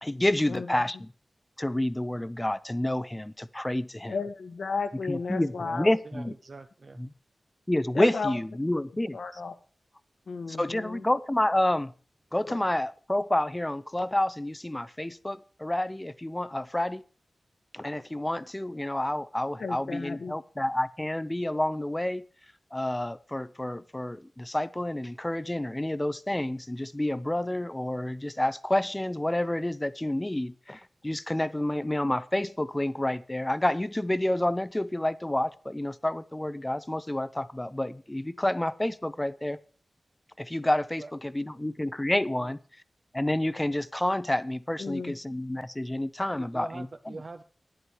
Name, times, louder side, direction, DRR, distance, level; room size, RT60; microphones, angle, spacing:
voice 1, 0.0-1.1 1.6-4.2 5.1-6.3 7.0-7.1 7.7-9.2 10.5-11.9 12.3-17.0 17.7-22.2 22.7-39.6 40.4-42.6 43.1-47.2, left 1 dB, 15° left, 16 dB, 0.5 m, -29 dB
voice 2, 4.1-5.9 7.9-8.3 9.1-9.5 10.3-11.0 12.5-12.6 19.6-20.3 44.8-45.1, left 4 dB, 80° left, 8 dB, 1.3 m, -33 dB
voice 3, 5.6-7.0 31.4-31.5 41.0-41.1 41.5-41.6 42.4-42.5 46.4-47.4, right 3 dB, 45° right, 8 dB, 0.7 m, -44 dB
11.0 x 10.0 x 4.7 m, 0.40 s
wide cardioid pair, 110°, 0 cm